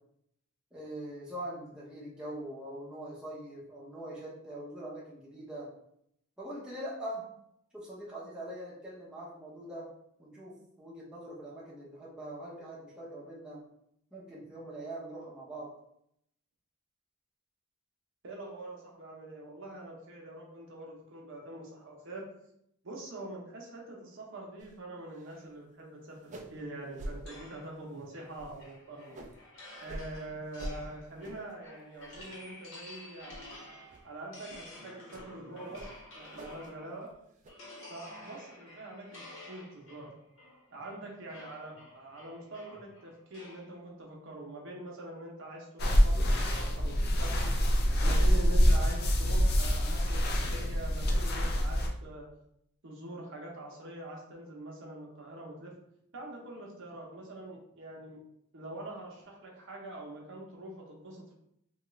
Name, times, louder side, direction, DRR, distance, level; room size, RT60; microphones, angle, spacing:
voice 1, 0.7-5.7 6.4-7.2 7.7-9.9 10.2-13.6 14.1-15.7, right 1 dB, 5° right, -7 dB, 0.7 m, -42 dB
voice 2, 18.2-22.3 22.8-29.2 29.8-33.7 34.0-35.9 36.2-37.1 37.9-40.1 40.7-47.5 48.0-52.3 52.8-55.7 56.1-58.2 58.5-61.3, right 1 dB, 60° right, -1 dB, 0.7 m, -44 dB
sound 1, 24.6-24.8 25.1-25.5 25.8-25.9 26.2-26.6 26.9-27.2 27.6-27.9 28.3-29.4 29.8-30.1 30.5-30.8 31.2-31.5 31.9-32.5 32.8-33.0 33.3-33.4 33.9-34.0 34.5-34.7 35.1-35.3 35.7-36.7 37.0-37.5, right 1 dB, 35° right, 0.3 m, -45 dB
sound 2, 27.3-37.1 37.5-43.7, left 1 dB, 60° left, 1.0 m, -51 dB
sound 3, 45.8-51.9, equal, 45° left, 0.4 m, -26 dB
2.9 x 2.3 x 3.0 m, 0.75 s
head